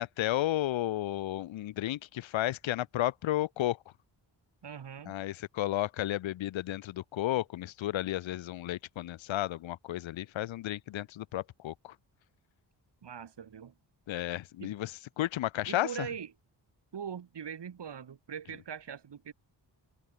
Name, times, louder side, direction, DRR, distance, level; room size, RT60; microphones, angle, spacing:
voice 1, 0.0-3.8 5.1-11.9 14.1-14.9 15.2-16.1, left 14 dB, 80° left, 0.7 m, -33 dB
voice 2, 4.6-5.2 13.0-13.8 14.6-14.7 15.7-16.3 16.9-19.3, right 7 dB, 60° right, 3.4 m, -41 dB
cardioid pair, 80°, 45 cm